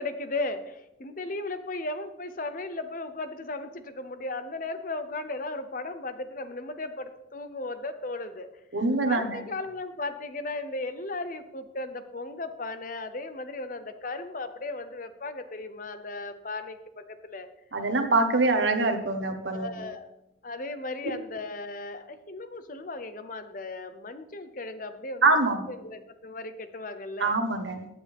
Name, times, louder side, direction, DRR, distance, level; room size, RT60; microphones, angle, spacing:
voice 1, 0.0-8.5 9.1-17.5 19.5-20.1 20.4-25.2 25.7-27.4, left 2 dB, 45° left, 10 dB, 0.8 m, -36 dB
voice 2, 8.7-9.4 17.7-19.7 25.2-25.6 27.2-27.9, right 3 dB, 70° right, 5 dB, 1.4 m, -24 dB
15.5 x 9.1 x 3.6 m, 0.89 s
head